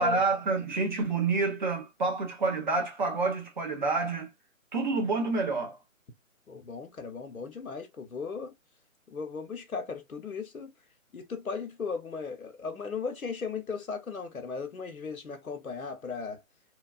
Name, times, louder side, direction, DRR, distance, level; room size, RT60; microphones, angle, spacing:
voice 1, 0.0-4.3 4.7-5.8, right 3 dB, 35° right, 0.9 m, -28 dB
voice 2, 6.5-8.5 9.1-10.7 11.1-16.4, left 5 dB, 90° left, 0.8 m, -37 dB
3.1 x 2.3 x 2.3 m
figure-of-eight pair, 145°, 41 cm